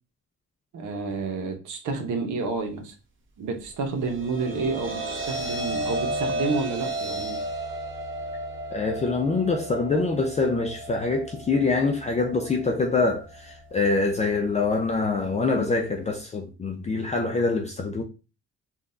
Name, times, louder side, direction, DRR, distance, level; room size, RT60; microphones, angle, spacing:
voice 1, 0.7-2.9 3.4-7.4, right 4 dB, 75° right, 0.9 m, -30 dB
sound 1, 3.9-16.2, right 1 dB, 40° right, 0.8 m, -34 dB
voice 2, 8.7-18.0, left 3 dB, 25° left, 0.4 m, -25 dB
3.7 x 2.3 x 2.5 m
cardioid pair, 90°, 30 cm